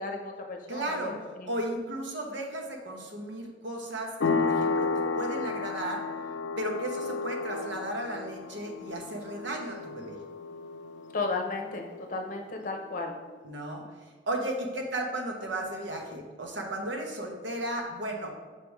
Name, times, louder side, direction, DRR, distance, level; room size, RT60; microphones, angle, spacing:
voice 1, 0.0-1.5 11.1-13.1, left 3 dB, 45° left, 3 dB, 0.8 m, -34 dB
voice 2, 0.7-1.1 1.5-6.0 6.6-10.2 13.4-13.8 14.3-18.3, right 1 dB, 75° right, 1 dB, 1.1 m, -35 dB
sound 1, 4.2-12.6, left 4 dB, 70° left, 0.5 m, -33 dB
5.8 x 3.4 x 4.7 m, 1.4 s
head